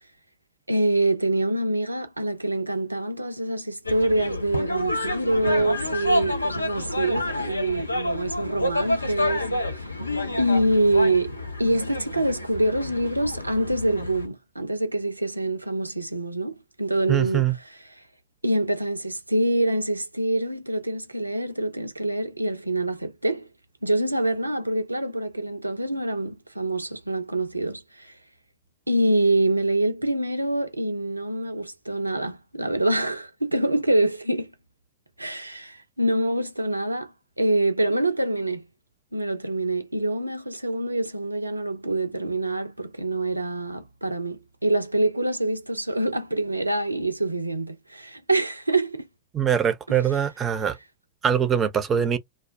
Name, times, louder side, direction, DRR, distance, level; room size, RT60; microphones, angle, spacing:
voice 1, 0.7-9.9 10.4-17.5 18.4-23.5 23.8-28.1 28.9-34.5 35.2-37.1 37.4-38.7 39.1-49.1, right 1 dB, 85° right, 0.5 m, -25 dB
sound 1, 3.8-14.3, left 1 dB, 85° left, 0.6 m, -29 dB
voice 2, 17.1-17.5 49.3-50.8 51.2-52.2, right 9 dB, 25° right, 0.6 m, -22 dB
2.4 x 2.1 x 3.4 m
figure-of-eight pair, 90°, 0 cm